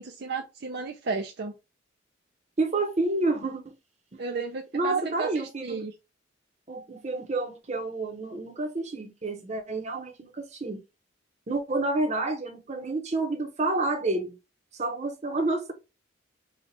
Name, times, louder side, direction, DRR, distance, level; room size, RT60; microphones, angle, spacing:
voice 1, 0.0-1.5 4.2-5.3 5.6-5.9, right 4 dB, 55° right, 0.5 m, -33 dB
voice 2, 2.6-3.7 4.1-4.2 4.7-5.8 6.7-10.8 11.5-14.3 14.7-15.7, right 2 dB, 35° right, 0.9 m, -29 dB
4.3 x 2.3 x 4.0 m
head